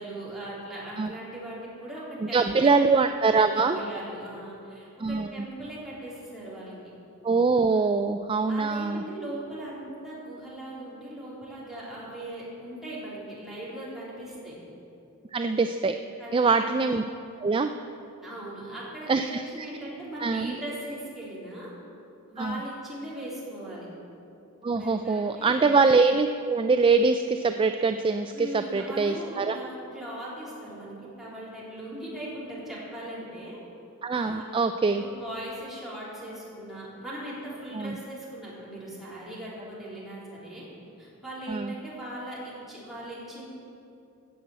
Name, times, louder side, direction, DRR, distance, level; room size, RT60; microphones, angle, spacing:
voice 1, 0.0-2.9 3.3-6.7 8.5-14.5 16.2-16.7 18.2-21.7 22.3-23.9 24.6-25.5 28.3-33.6 34.1-34.5 35.0-40.7 41.0-43.4, right 1 dB, ahead, -8 dB, 3.7 m, -39 dB
voice 2, 2.2-3.8 5.0-5.3 7.2-9.0 15.3-16.0 16.3-17.0 17.4-17.7 19.1-19.4 20.2-20.6 22.4-22.6 24.6-29.6 34.0-35.0 37.7-38.0 41.5-41.7, right 4 dB, 25° right, 7 dB, 0.3 m, -23 dB
15.5 x 6.1 x 8.0 m, 2.7 s
head